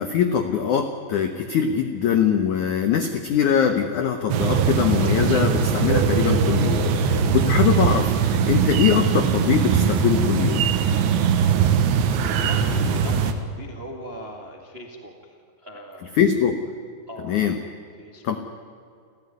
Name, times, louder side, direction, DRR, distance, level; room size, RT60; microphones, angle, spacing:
voice 1, 0.0-10.7 16.2-16.6 17.2-17.6 18.2-18.4, left 8 dB, 75° left, 7 dB, 1.7 m, -22 dB
sound 1, 4.3-13.3, right 6 dB, 80° right, 3.7 m, -21 dB
voice 2, 12.1-15.3 15.6-16.1 17.1-17.6 18.0-18.4, equal, 30° right, 2 dB, 1.1 m, -40 dB
29.0 x 15.5 x 9.6 m, 2.4 s
omnidirectional pair, 5.3 m